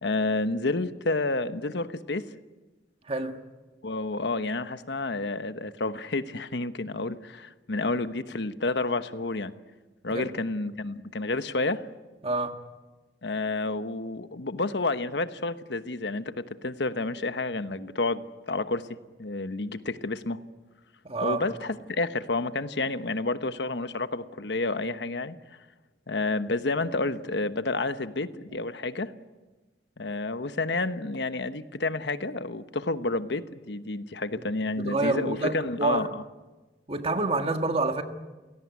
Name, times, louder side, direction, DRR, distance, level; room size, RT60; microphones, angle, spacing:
voice 1, 0.0-2.2 3.8-9.5 10.0-11.8 13.2-18.9 19.2-20.4 21.2-25.4 26.1-29.1 30.0-36.1, left 2 dB, 70° left, 1.1 m, -30 dB
voice 2, 3.1-3.4 10.1-10.4 12.2-12.6 21.0-21.4 28.5-28.6 34.4-34.5 34.8-36.1 36.9-38.0, right 2 dB, 35° right, 1.7 m, -28 dB
29.0 x 17.5 x 9.6 m
head